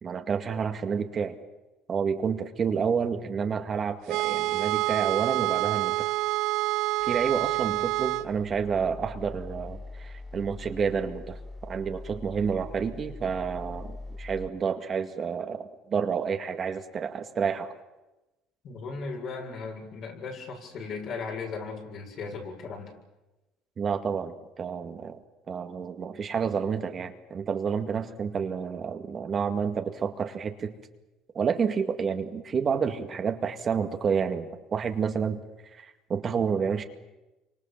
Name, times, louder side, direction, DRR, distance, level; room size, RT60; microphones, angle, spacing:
voice 1, 0.0-1.4 1.9-6.1 7.1-17.7 23.8-25.2 25.5-30.7 31.3-35.4 35.7-36.8, right 6 dB, 40° right, 6 dB, 2.1 m, -29 dB
sound 1, 4.1-8.3, right 17 dB, 80° right, 1.0 m, -27 dB
sound 2, 7.0-14.5, left 2 dB, ahead, 1.0 m, -43 dB
voice 2, 18.6-22.9, left 4 dB, 55° left, 1 dB, 7.5 m, -37 dB
28.0 x 25.5 x 7.4 m, 1.0 s
cardioid pair, 105°, 0 cm